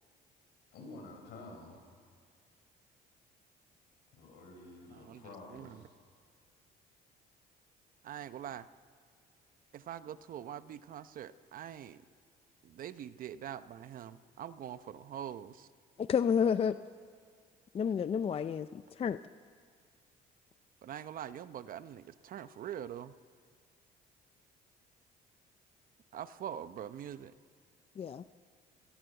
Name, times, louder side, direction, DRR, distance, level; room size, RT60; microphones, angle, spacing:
voice 1, 0.7-1.9 4.1-6.0, left 2 dB, 75° left, 2 dB, 7.0 m, -50 dB
voice 2, 8.0-8.7 9.7-12.0 12.6-15.7 20.8-23.1 26.1-27.3, right 10 dB, 55° right, 13 dB, 0.9 m, -44 dB
voice 3, 16.0-16.8 17.7-18.7 19.0-19.2 28.0-28.2, left 7 dB, 35° left, 12 dB, 0.5 m, -29 dB
28.5 x 17.5 x 8.0 m, 2.1 s
cardioid pair, 110°, 17 cm